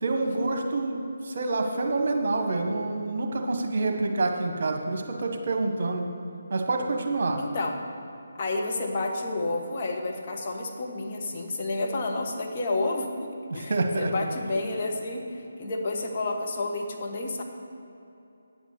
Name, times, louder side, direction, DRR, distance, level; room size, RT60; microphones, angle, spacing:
voice 1, 0.0-6.0 6.5-7.4 13.5-14.1, right 2 dB, 45° right, 4 dB, 1.4 m, -27 dB
voice 2, 7.4-7.8 8.4-17.4, left 2 dB, 35° left, 0 dB, 1.4 m, -30 dB
8.9 x 8.9 x 6.9 m, 2.9 s
figure-of-eight pair, 150°, 0 cm